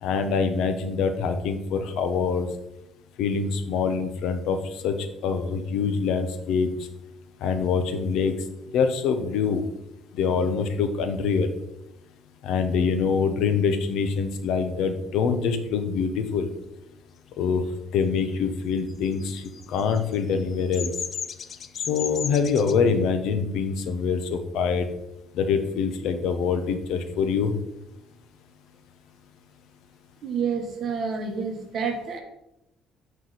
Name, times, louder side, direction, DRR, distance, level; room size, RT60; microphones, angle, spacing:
voice 1, 0.0-2.5 3.2-4.9 5.2-6.7 7.4-8.4 8.7-9.7 10.1-11.5 12.4-16.5 17.4-17.6 17.9-20.9 21.8-24.9 25.3-27.6, left 5 dB, 70° left, 8 dB, 0.7 m, -25 dB
Bird vocalization bird call bird song, 19.0-22.8, left 7 dB, 35° left, 0.3 m, -34 dB
voice 2, 30.2-32.2, right 5 dB, 40° right, 3 dB, 1.2 m, -29 dB
7.8 x 4.7 x 4.0 m, 0.88 s
cardioid pair, 175°, 0 cm